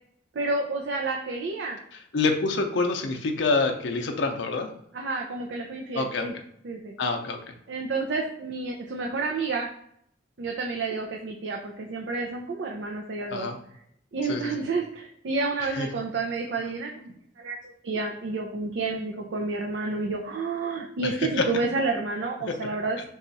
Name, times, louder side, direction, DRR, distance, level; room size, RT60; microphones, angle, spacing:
voice 1, 0.3-1.8 4.9-6.3 6.6-6.9 7.7-9.7 10.4-13.5 14.1-23.0, right 3 dB, 75° right, 0 dB, 0.5 m, -30 dB
voice 2, 1.9-4.7 5.9-6.3 7.0-7.5 13.3-13.6 14.3-14.6 15.7-15.9 21.0-21.4, left 3 dB, 85° left, 4 dB, 0.5 m, -27 dB
4.1 x 2.3 x 3.9 m, 0.70 s
head